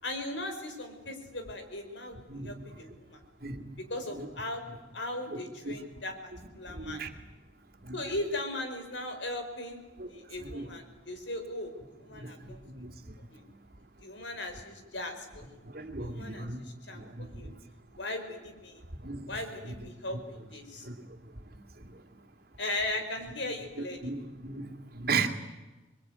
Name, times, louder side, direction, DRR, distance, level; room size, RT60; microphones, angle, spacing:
voice 1, 0.0-3.2 3.9-4.6 4.9-6.3 6.6-7.0 7.9-9.8 10.1-12.8 13.3-13.4 14.0-15.6 16.0-17.5 18.0-18.8 19.3-20.9 22.6-24.1, left 1 dB, 70° left, 6 dB, 5.2 m, -38 dB
voice 2, 6.7-7.1 7.9-8.0 10.5-10.6 12.1-12.5 12.7-12.9 15.7-16.6 16.9-17.3 19.0-19.3 20.8-20.9 24.0-25.3, right 4 dB, 50° right, 5 dB, 2.6 m, -35 dB
28.0 x 22.5 x 9.5 m, 1.1 s
head